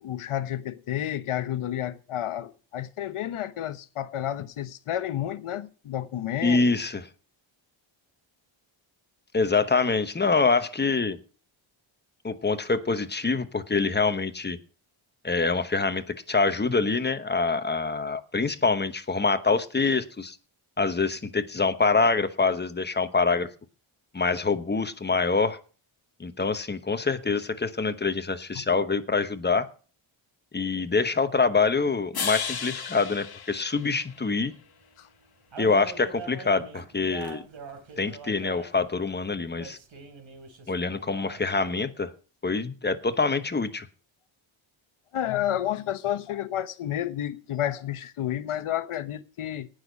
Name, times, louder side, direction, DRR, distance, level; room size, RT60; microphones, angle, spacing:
voice 1, 0.0-6.6 28.5-28.6 35.0-35.1 45.1-49.7, left 11 dB, 80° left, 1.1 m, -31 dB
voice 2, 6.4-7.0 9.3-11.2 12.2-14.6 15.2-20.4 20.8-23.5 24.1-25.6 26.2-29.7 30.5-34.5 35.6-37.5 38.0-39.8 40.7-42.1 42.4-43.9, left 4 dB, 20° left, 1.0 m, -25 dB
sound 1, 32.1-34.5, left 7 dB, 50° left, 1.5 m, -34 dB
sound 2, 32.3-32.7 34.4-34.5 34.8-34.9 35.1-35.2 35.5-39.0 39.6-41.8, right 5 dB, 65° right, 3.1 m, -43 dB
18.5 x 6.5 x 5.2 m
wide cardioid pair, 160°, 50 cm